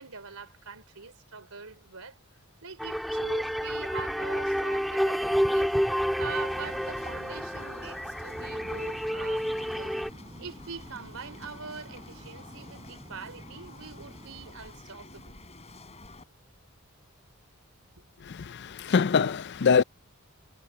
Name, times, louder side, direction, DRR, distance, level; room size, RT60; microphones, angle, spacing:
voice 1, 0.0-2.2 2.6-5.7 6.2-9.9 10.4-15.4, right 5 dB, 75° right, 3.7 m, -43 dB
sound 1, 2.8-10.1, equal, ahead, 2.3 m, -29 dB
sound 2, 6.3-16.2, left 2 dB, 30° left, 4.9 m, -49 dB
sound 3, 8.4-14.5, right 1 dB, 20° right, 4.0 m, -50 dB
voice 2, 18.5-19.8, left 6 dB, 50° left, 0.5 m, -23 dB
head